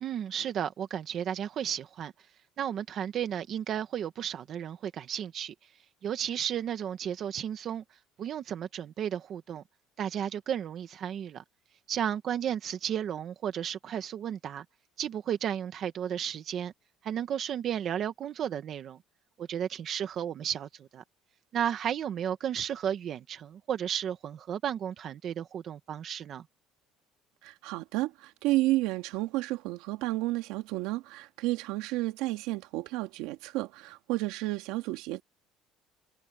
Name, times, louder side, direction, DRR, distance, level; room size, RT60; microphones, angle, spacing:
voice 1, 0.0-2.1 2.6-5.7 6.0-9.6 10.0-11.4 11.9-14.6 15.0-16.7 17.0-19.0 19.4-21.0 21.5-26.4, right 9 dB, 35° right, 1.0 m, -33 dB
voice 2, 27.4-35.2, right 18 dB, 75° right, 2.3 m, -31 dB
cardioid pair, 175°, 0 cm